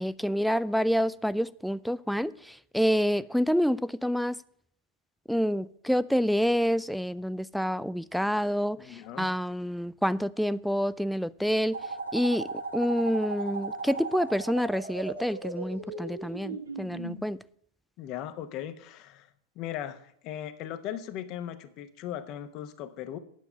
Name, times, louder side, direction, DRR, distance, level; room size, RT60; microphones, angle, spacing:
voice 1, 0.0-4.4 5.3-11.8 12.1-17.4, equal, ahead, 0.3 m, -28 dB
voice 2, 8.8-9.3 18.0-19.3 19.6-23.2, left 11 dB, 40° left, 0.9 m, -38 dB
sound 1, 11.7-17.2, right 3 dB, 70° right, 1.4 m, -37 dB
9.3 x 6.9 x 7.6 m
figure-of-eight pair, 90°, 0 cm